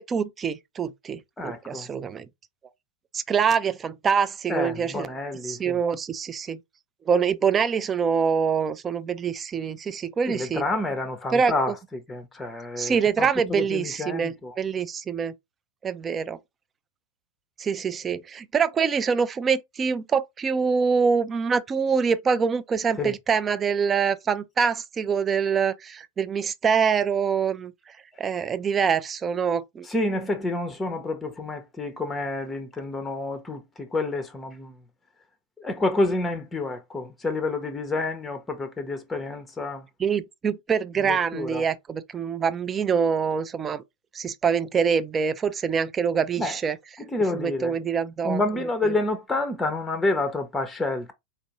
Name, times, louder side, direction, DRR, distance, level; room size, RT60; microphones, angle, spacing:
voice 1, 0.0-2.3 3.1-5.1 5.4-6.6 7.1-10.6 11.3-11.5 12.8-15.3 15.8-16.4 17.6-27.7 28.2-29.9 40.0-43.8 44.1-46.8 47.3-48.4, right 6 dB, 20° right, 0.4 m, -25 dB
voice 2, 1.4-1.9 4.5-5.8 10.3-14.6 23.0-23.1 29.8-34.7 35.6-39.8 41.0-41.6 46.4-46.6 47.1-47.8 48.2-51.1, left 2 dB, 10° left, 0.7 m, -29 dB
4.3 x 2.5 x 3.0 m
figure-of-eight pair, 90°, 0 cm